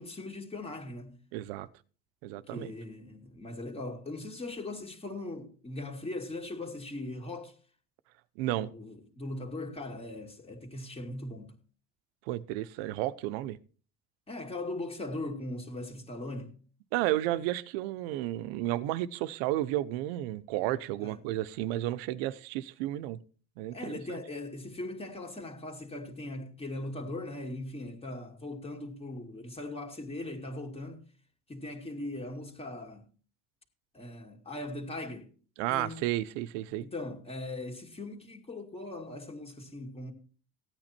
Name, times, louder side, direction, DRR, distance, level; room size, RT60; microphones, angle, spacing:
voice 1, 0.0-1.2 2.4-7.5 8.6-11.5 12.8-12.9 14.3-16.6 21.0-21.2 23.7-31.0 31.5-33.1 33.9-35.3 35.7-36.0 36.8-40.1, left 2 dB, 20° left, 2.4 m, -40 dB
voice 2, 1.3-1.7 2.2-2.7 8.4-8.7 12.3-13.6 16.9-23.2 23.6-24.2 35.6-36.8, right 15 dB, 85° right, 0.9 m, -32 dB
15.0 x 9.0 x 4.4 m
supercardioid pair, 115°, 29 cm